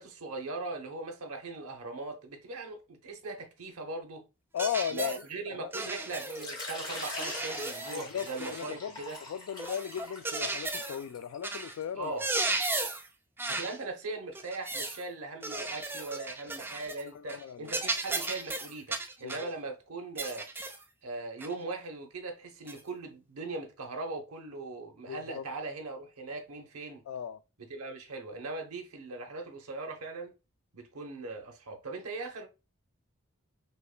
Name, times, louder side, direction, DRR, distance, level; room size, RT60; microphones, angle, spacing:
voice 1, 0.0-4.3 4.9-9.2 12.0-12.2 13.5-20.5 21.0-27.0 27.6-30.3 30.7-32.5, right 3 dB, 90° right, 0.9 m, -40 dB
voice 2, 4.5-5.1 5.5-5.7 7.9-9.0 9.3-12.2 17.1-17.8 19.2-19.5 25.1-25.4 27.1-27.4, left 8 dB, 75° left, 0.3 m, -36 dB
sound 1, 4.6-5.2 5.7-6.5 6.9-8.8 9.6-11.0 11.4-11.7 12.0-13.1 13.4-13.8 14.4-15.0 15.4-17.0 17.3-17.4 17.7-19.5 20.2-20.8 21.4-21.5 22.7-22.8, right 2 dB, 10° right, 0.3 m, -35 dB
Water / Liquid, 6.3-11.8, left 2 dB, 20° left, 1.1 m, -43 dB
5.3 x 2.2 x 2.2 m
head